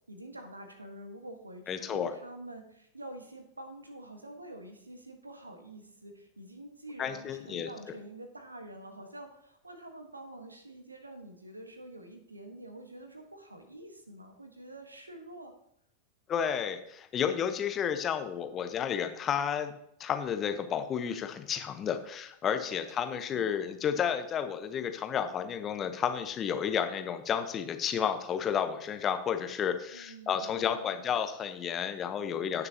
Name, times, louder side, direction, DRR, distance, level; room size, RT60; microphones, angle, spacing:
voice 1, 0.1-15.5 22.9-23.6 29.9-31.1, right 1 dB, 80° right, 6 dB, 1.4 m, -47 dB
voice 2, 1.7-2.1 7.0-7.7 16.3-19.7 20.0-32.7, left 8 dB, 25° left, 8 dB, 1.1 m, -31 dB
16.5 x 6.6 x 2.9 m, 0.74 s
figure-of-eight pair, 90°, 0 cm